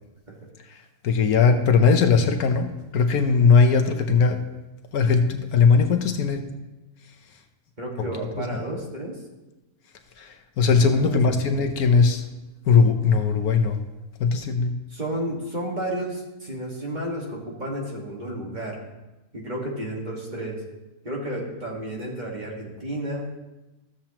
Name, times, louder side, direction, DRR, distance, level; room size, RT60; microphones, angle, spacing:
voice 1, 1.0-4.4 4.9-6.4 8.4-8.5 10.2-12.2 12.6-13.8 14.2-14.7, left 5 dB, 70° left, 5 dB, 1.2 m, -19 dB
voice 2, 7.8-9.2 10.9-11.2 14.9-18.8 19.3-20.6 21.0-23.3, right 1 dB, 30° right, -3 dB, 1.8 m, -32 dB
14.0 x 7.4 x 2.9 m, 1.1 s
omnidirectional pair, 1.6 m